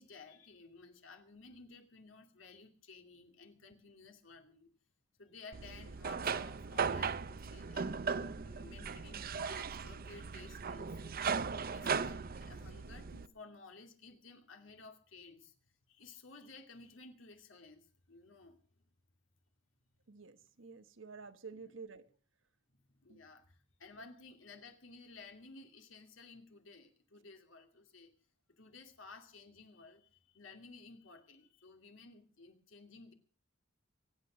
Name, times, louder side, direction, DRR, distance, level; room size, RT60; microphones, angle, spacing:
voice 1, 0.0-4.7 5.2-15.5 15.9-18.6 21.5-21.7 23.0-28.1 28.5-33.1, left 3 dB, 80° left, 2.6 m, -55 dB
sound 1, 5.5-13.3, right 5 dB, 50° right, 0.7 m, -38 dB
voice 2, 20.1-22.1 23.1-23.2, right 4 dB, 75° right, 1.2 m, -50 dB
23.0 x 9.1 x 6.2 m
head